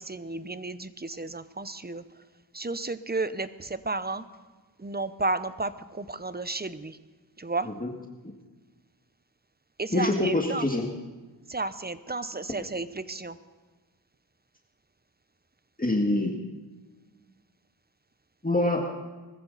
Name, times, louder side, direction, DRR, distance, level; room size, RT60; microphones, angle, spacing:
voice 1, 0.0-2.0 2.5-4.3 4.8-7.0 7.4-7.7 9.8-10.7 11.5-13.4, right 3 dB, 20° right, 13 dB, 0.8 m, -32 dB
voice 2, 9.9-10.9 15.8-16.5 18.4-18.8, left 2 dB, 20° left, 0 dB, 1.9 m, -25 dB
20.5 x 14.0 x 4.1 m, 1.3 s
cardioid pair, 50°, 44 cm